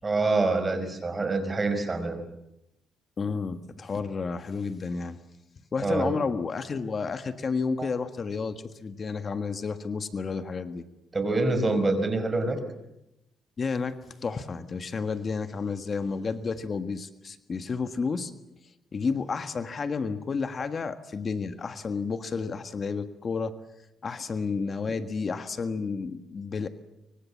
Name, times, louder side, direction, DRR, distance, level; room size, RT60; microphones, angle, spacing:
voice 1, 0.0-2.2 5.8-6.1 7.8-7.9 11.1-12.6, right 3 dB, 25° right, 9 dB, 5.3 m, -26 dB
voice 2, 3.2-5.2 5.7-10.8 13.6-18.3 18.9-23.5 24.0-26.7, left 5 dB, 40° left, 9 dB, 1.6 m, -31 dB
25.5 x 24.5 x 7.4 m, 0.89 s
cardioid pair, 90°, 0 cm